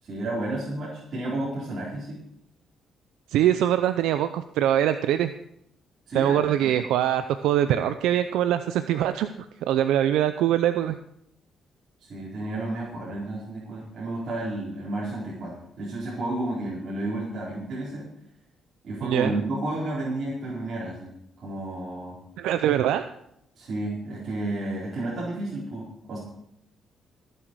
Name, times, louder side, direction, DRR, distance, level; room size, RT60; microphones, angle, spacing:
voice 1, 0.0-2.2 6.1-6.8 12.0-18.1 18.8-21.1 21.4-22.2 23.5-26.2, right 2 dB, 50° right, -7 dB, 4.4 m, -31 dB
voice 2, 3.3-5.3 6.1-10.9 19.0-19.3 22.4-23.0, right 11 dB, 90° right, 10 dB, 0.5 m, -23 dB
19.5 x 7.7 x 4.7 m, 0.76 s
cardioid pair, 90°, 0 cm